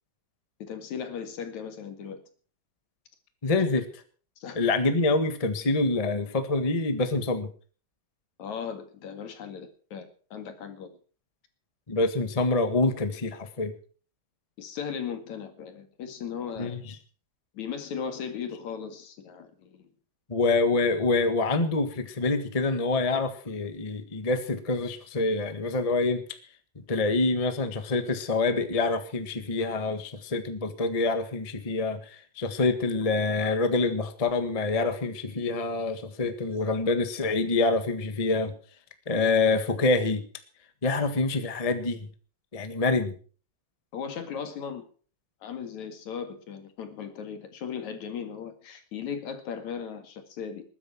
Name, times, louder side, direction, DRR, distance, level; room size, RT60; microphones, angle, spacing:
voice 1, 0.6-2.2 3.5-3.6 4.4-4.6 8.4-10.9 14.6-16.8 17.5-19.9 43.9-44.8 45.4-50.6, left 7 dB, 75° left, 8 dB, 3.4 m, -37 dB
voice 2, 3.4-3.9 4.5-7.5 11.9-13.7 16.6-16.9 20.3-26.2 26.7-38.5 39.1-40.2 40.8-42.1 42.5-43.1, left 3 dB, 20° left, 9 dB, 1.0 m, -26 dB
20.5 x 9.7 x 6.1 m, 0.42 s
omnidirectional pair, 3.4 m